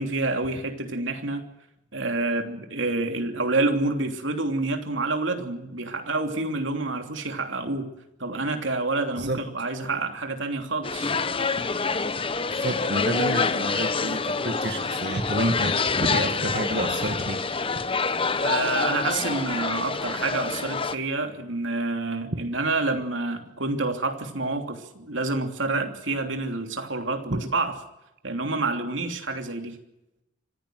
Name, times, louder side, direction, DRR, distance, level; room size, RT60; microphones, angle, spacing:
voice 1, 0.0-1.5 1.9-7.9 8.2-11.1 18.4-27.8 28.2-29.8, right 2 dB, 90° right, 5 dB, 3.1 m, -28 dB
sound 1, 10.8-21.0, left 4 dB, 30° left, 0.9 m, -27 dB
voice 2, 11.7-12.1 12.5-17.4 18.0-18.1 27.3-27.4, right 1 dB, 60° right, 5 dB, 2.0 m, -29 dB
25.5 x 16.5 x 7.8 m, 0.89 s
head